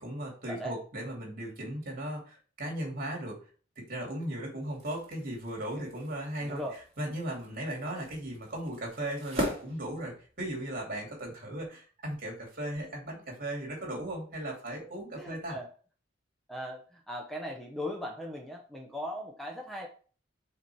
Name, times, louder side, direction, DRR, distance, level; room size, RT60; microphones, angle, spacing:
voice 1, 0.0-3.4 3.8-6.6 7.0-15.5, right 1 dB, 50° right, 0 dB, 2.6 m, -37 dB
sound 1, 4.6-10.6, equal, 35° right, 2.5 m, -41 dB
voice 2, 6.4-6.8 15.2-15.7 16.5-19.9, equal, ahead, 0 dB, 0.8 m, -38 dB
5.8 x 4.3 x 4.6 m, 0.40 s
head